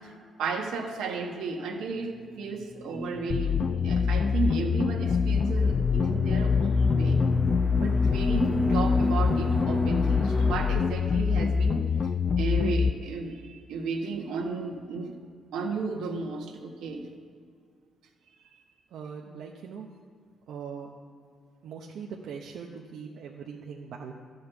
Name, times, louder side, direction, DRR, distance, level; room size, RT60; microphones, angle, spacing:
voice 1, 0.4-7.2 7.7-11.9 12.4-15.1 15.5-17.1, right 4 dB, 90° right, 1 dB, 1.5 m, -33 dB
sound 1, 2.2-10.8, left 2 dB, 25° left, 0.9 m, -30 dB
sound 2, 3.3-12.9, left 6 dB, 50° left, 0.3 m, -25 dB
voice 2, 18.9-19.9 20.5-20.9 21.6-24.1, right 6 dB, 75° right, -1 dB, 0.9 m, -41 dB
12.5 x 5.5 x 8.1 m, 2.1 s
cardioid pair, 90°, 0 cm